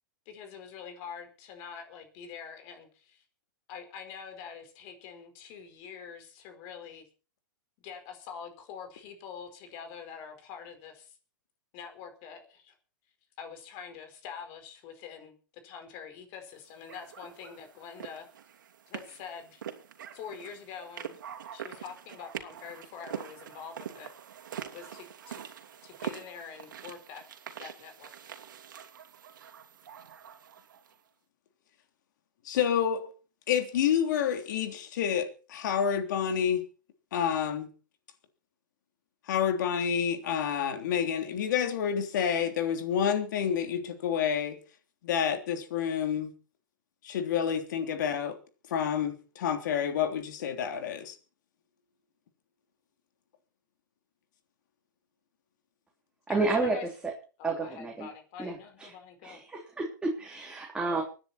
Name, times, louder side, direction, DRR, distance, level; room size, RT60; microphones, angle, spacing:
voice 1, 0.2-3.2 3.7-7.1 7.8-11.2 11.7-12.7 13.4-15.4 15.6-18.2 18.9-19.6 20.1-21.2 21.5-24.1 24.7-25.5 25.8-27.2 27.6-28.1 56.3-56.9 57.4-59.4, left 7 dB, 45° left, 4.8 m, -45 dB
sound 1, 16.9-30.9, right 9 dB, 75° right, 2.5 m, -44 dB
voice 2, 32.4-33.1 33.5-36.6 37.1-37.7 39.3-44.6 45.0-46.3 47.0-48.4 48.7-51.1, left 8 dB, 65° left, 3.3 m, -29 dB
voice 3, 56.3-56.8 57.0-57.1 57.4-58.1 58.4-58.9 59.2-61.0, right 3 dB, 10° right, 3.3 m, -31 dB
24.5 x 10.0 x 4.4 m
hypercardioid pair, 125°, 11 cm